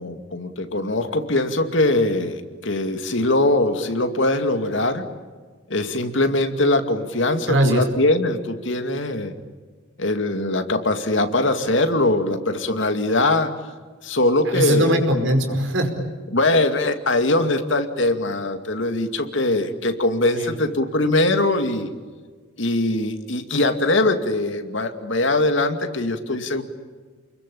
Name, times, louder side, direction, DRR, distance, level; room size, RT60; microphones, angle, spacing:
voice 1, 0.0-5.0 5.7-9.3 10.0-13.5 14.0-15.0 16.3-21.9 22.6-26.6, left 2 dB, 65° left, 7 dB, 2.4 m, -21 dB
voice 2, 7.5-7.8 14.5-16.0 20.3-20.5, right 1 dB, 65° right, 5 dB, 5.0 m, -20 dB
29.5 x 22.0 x 8.6 m, 1.5 s
head